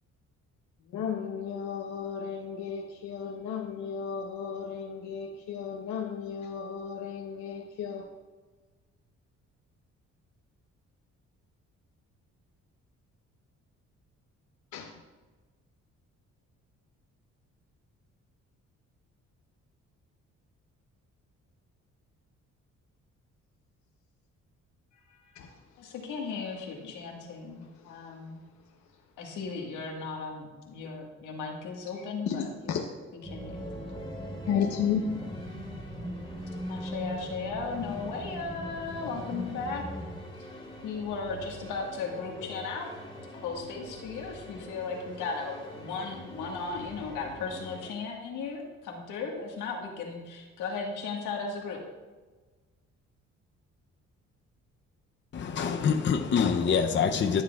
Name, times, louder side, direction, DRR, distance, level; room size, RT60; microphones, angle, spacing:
voice 1, 0.9-8.1 14.7-15.0 25.1-25.6 26.8-26.9 27.8-28.1 31.9-32.8 34.4-35.3, left 7 dB, 70° left, 0.9 m, -34 dB
voice 2, 25.8-28.4 29.2-32.7 33.3-33.7 36.7-39.8 40.8-42.9 43.3-51.8, left 4 dB, 90° left, 1.6 m, -36 dB
sound 1, 33.2-47.9, left 1 dB, 15° left, 2.4 m, -45 dB
sound 2, 33.2-40.2, equal, 15° right, 0.9 m, -40 dB
voice 3, 55.3-57.4, left 6 dB, 40° left, 0.6 m, -25 dB
14.0 x 7.4 x 2.4 m
cardioid pair, 90°, 30 cm